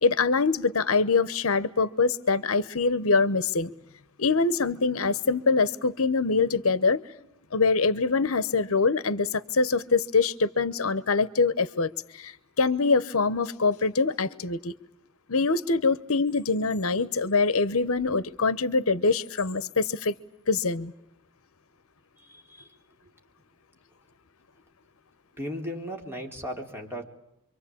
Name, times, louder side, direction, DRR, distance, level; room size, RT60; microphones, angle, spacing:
voice 1, 0.0-3.7 4.2-7.0 7.5-14.7 15.3-20.1 20.5-20.9, left 4 dB, 70° left, 16 dB, 1.0 m, -24 dB
voice 2, 22.2-22.7 25.4-27.0, equal, 10° right, 1 dB, 3.9 m, -36 dB
27.5 x 24.5 x 8.6 m, 0.80 s
head